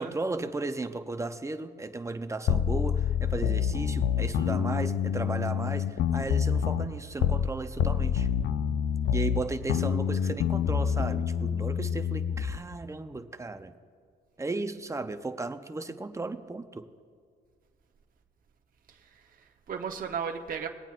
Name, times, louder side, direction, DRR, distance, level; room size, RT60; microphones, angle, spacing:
voice 1, 0.0-8.3 9.1-13.7 14.4-16.9, right 3 dB, 15° right, 9 dB, 0.7 m, -35 dB
sound 1, 2.5-7.5 7.8-12.6, left 8 dB, 70° left, 0.6 m, -27 dB
voice 2, 18.9-20.7, right 6 dB, 45° right, 2 dB, 1.0 m, -36 dB
21.5 x 9.0 x 2.5 m, 2.1 s
cardioid pair, 90°, 20 cm